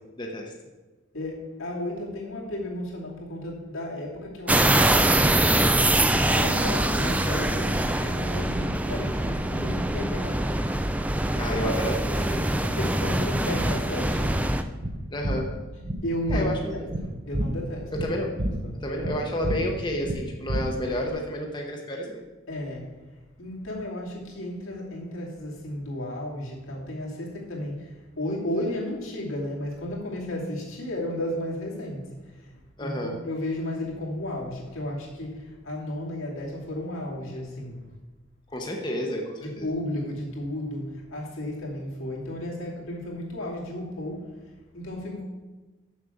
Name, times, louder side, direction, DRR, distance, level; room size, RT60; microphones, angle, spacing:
voice 1, 0.2-0.5 11.4-12.5 15.1-15.5 16.3-16.9 17.9-18.3 18.8-22.2 32.8-33.2 38.5-39.7, equal, 20° left, 0 dB, 0.9 m, -30 dB
voice 2, 1.1-5.3 5.8-10.6 11.1-11.6 12.6-14.4 16.0-18.1 18.6-19.2 19.4-19.6 22.5-22.9 23.4-32.5 32.8-37.8 39.4-44.3 44.7-45.2, left 1 dB, 85° left, -4 dB, 2.7 m, -34 dB
sound 1, 4.5-14.6, right 1 dB, 5° right, 0.3 m, -24 dB
sound 2, 14.8-21.1, right 1 dB, 45° right, 0.8 m, -31 dB
7.3 x 6.6 x 7.0 m, 1.2 s
head